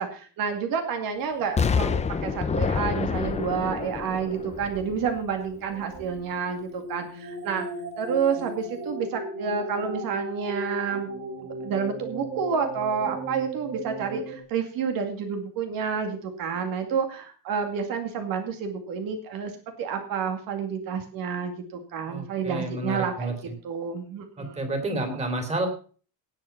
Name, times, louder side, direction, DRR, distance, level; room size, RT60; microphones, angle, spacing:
voice 1, 0.0-2.0 2.2-7.7 8.0-11.1 11.6-19.5 19.8-23.3 23.6-24.6, right 6 dB, 60° right, 5 dB, 2.2 m, -29 dB
Explosion, 1.6-5.5 5.9-6.0, left 5 dB, 15° left, 0.8 m, -28 dB
sound 1, 5.7-14.4, right 2 dB, 40° right, 6.4 m, -36 dB
voice 2, 22.1-23.3 24.4-25.7, right 1 dB, 15° right, 6 dB, 3.2 m, -30 dB
18.0 x 7.1 x 5.9 m, 0.41 s
cardioid pair, 165°, 38 cm